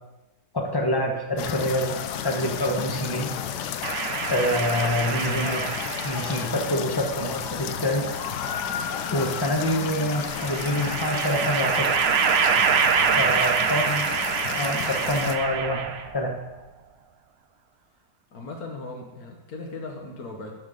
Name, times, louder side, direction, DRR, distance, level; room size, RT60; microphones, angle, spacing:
voice 1, 0.5-3.3 4.3-5.7 6.0-8.0 9.1-11.9 13.2-14.1 14.6-15.9 16.1-16.3, left 1 dB, 20° left, 1 dB, 0.6 m, -26 dB
sound 1, 1.4-15.4, left 8 dB, 85° left, 1.2 m, -32 dB
sound 2, 3.8-6.5 7.6-8.6 10.2-16.2, right 6 dB, 80° right, 0.5 m, -26 dB
voice 2, 13.0-14.0 18.3-20.5, left 2 dB, 65° left, 1 dB, 1.4 m, -39 dB
11.5 x 4.0 x 4.9 m, 1.1 s
omnidirectional pair, 1.8 m